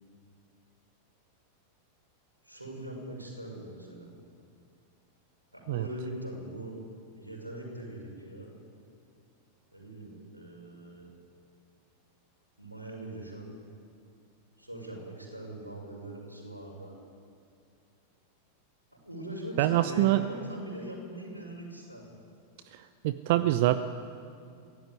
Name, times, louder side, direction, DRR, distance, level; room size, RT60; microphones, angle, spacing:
voice 1, 2.4-4.1 5.5-6.7 7.2-8.5 9.7-11.1 12.6-13.5 14.6-16.9 18.9-22.1 23.3-23.6, right 1 dB, 85° right, 0 dB, 6.3 m, -41 dB
voice 2, 19.6-20.2 22.7-23.8, right 15 dB, 50° right, 12 dB, 0.7 m, -25 dB
24.0 x 16.5 x 9.6 m, 2.4 s
figure-of-eight pair, 90°, 0 cm